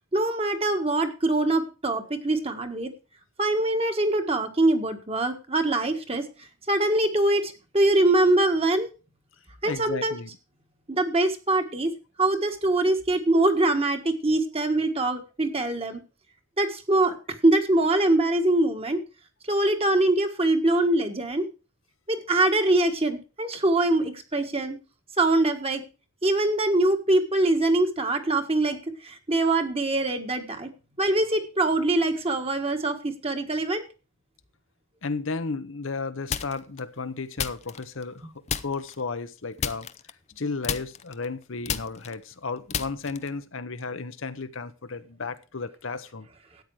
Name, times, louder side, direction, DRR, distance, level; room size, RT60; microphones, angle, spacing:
voice 1, 0.1-2.9 3.4-6.3 6.7-8.9 9.6-10.1 10.9-11.9 12.2-16.0 16.6-17.2 17.4-19.0 19.5-21.4 22.1-24.8 25.2-25.8 26.2-30.7 31.0-33.8, right 2 dB, 30° right, 1.6 m, -23 dB
voice 2, 9.6-10.3 35.0-39.9 40.4-46.3, left 4 dB, 65° left, 0.9 m, -33 dB
sound 1, 36.3-36.8 37.4-38.2 38.5-39.0 39.6-40.4 40.6-43.4, left 7 dB, 30° left, 0.6 m, -32 dB
13.0 x 9.2 x 4.8 m
head